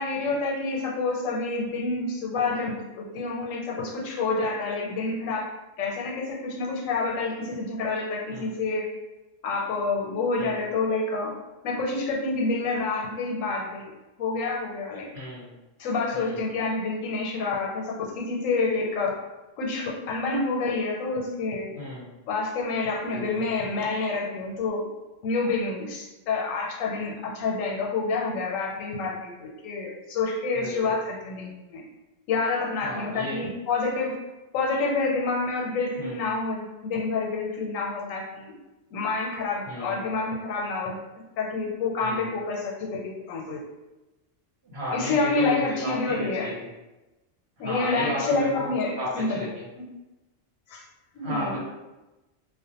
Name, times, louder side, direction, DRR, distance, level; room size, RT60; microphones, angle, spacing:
voice 1, 0.0-5.5 5.8-8.9 9.4-11.3 11.6-13.9 14.2-15.1 15.8-19.2 19.6-21.7 22.3-24.8 25.2-31.8 32.3-34.2 34.5-38.6 38.9-41.0 41.4-43.6 44.9-46.5 47.6-49.4 50.7-50.8 51.1-51.6, left 3 dB, 85° left, -1 dB, 1.0 m, -28 dB
voice 2, 15.1-15.5 16.1-16.5 21.8-22.0 23.1-23.5 30.5-30.9 32.8-33.4 36.0-36.2 39.6-40.0 42.0-42.3 44.6-46.5 47.6-49.6 51.2-51.6, equal, 60° right, -7 dB, 1.0 m, -34 dB
2.4 x 2.1 x 2.7 m, 1.1 s
omnidirectional pair, 1.3 m